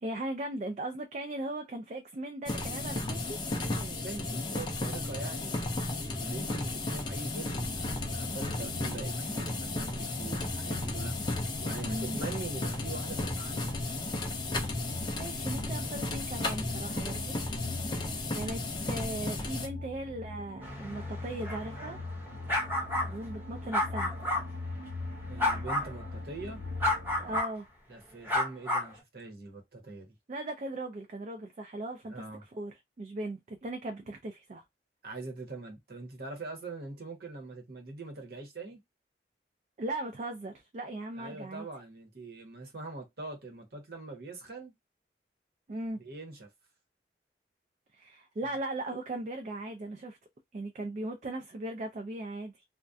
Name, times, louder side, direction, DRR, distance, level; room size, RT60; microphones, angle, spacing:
voice 1, 0.0-3.4 11.8-12.2 15.2-17.4 18.3-18.6 18.9-22.0 23.1-24.1 27.2-27.7 30.3-32.2 32.5-34.6 39.8-41.7 45.7-46.0 47.9-50.2 50.5-52.6, right 1 dB, 40° right, 0.3 m, -38 dB
sound 1, 2.5-19.7, left 2 dB, 25° left, 0.4 m, -34 dB
voice 2, 3.6-5.7 6.0-13.7 25.3-26.6 27.9-30.1 32.1-32.4 35.0-38.8 41.2-44.7 46.0-46.5 48.4-48.5, right 2 dB, 60° right, 0.9 m, -43 dB
sound 2, 7.5-27.4, left 2 dB, 85° right, 0.6 m, -42 dB
sound 3, 20.6-24.4 25.4-25.9 26.8-27.5 28.3-28.9, left 1 dB, 10° right, 0.8 m, -31 dB
2.3 x 2.1 x 2.5 m
head